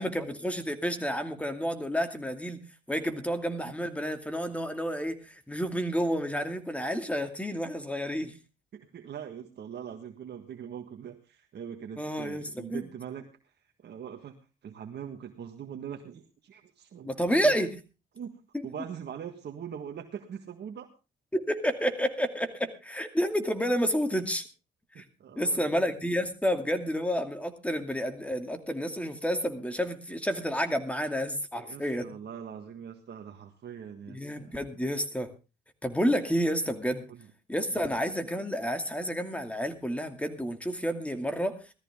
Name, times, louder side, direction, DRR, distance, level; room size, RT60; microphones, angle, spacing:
voice 1, 0.0-2.6 2.9-8.3 12.0-12.9 17.0-17.8 18.5-18.7 21.3-24.4 25.0-25.1 25.4-32.2 34.1-35.3 35.8-37.1 37.5-41.6, equal, 5° left, 7 dB, 2.5 m, -30 dB
voice 2, 8.7-13.3 13.8-14.4 14.6-17.1 17.4-17.5 18.1-18.4 18.6-20.9 24.9-25.7 31.5-34.8 37.1-37.2 37.7-38.0, right 8 dB, 60° right, 4 dB, 1.6 m, -42 dB
17.5 x 13.5 x 3.6 m, 0.30 s
cardioid pair, 90°, 20 cm